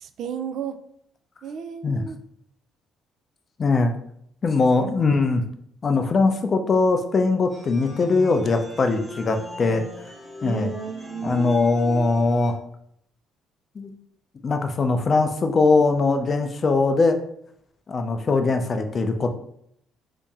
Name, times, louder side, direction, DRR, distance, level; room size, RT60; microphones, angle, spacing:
voice 1, 0.0-0.8 1.4-2.2 4.7-4.9 10.4-11.6, right 6 dB, 60° right, 10 dB, 0.3 m, -33 dB
voice 2, 3.6-3.9 4.4-5.4 5.8-9.8 10.4-10.7 11.2-12.6 13.8-13.9 14.4-17.2 17.9-19.3, left 3 dB, 35° left, 6 dB, 0.4 m, -21 dB
sound 1, 7.5-12.5, left 1 dB, 10° right, 0.9 m, -39 dB
2.9 x 2.7 x 3.5 m, 0.69 s
cardioid pair, 120°, 0 cm